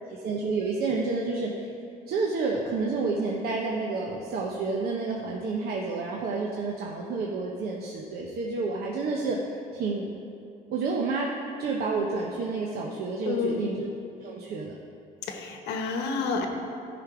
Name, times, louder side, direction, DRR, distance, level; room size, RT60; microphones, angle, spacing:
voice 1, 0.1-1.5 2.1-9.4 9.7-10.1 10.7-11.3 11.6-13.9 14.2-14.7, right 3 dB, 65° right, -2 dB, 1.0 m, -29 dB
voice 2, 13.2-13.6 15.3-16.5, left 5 dB, 85° left, 4 dB, 1.2 m, -29 dB
13.0 x 5.2 x 5.0 m, 2.6 s
cardioid pair, 110°, 17 cm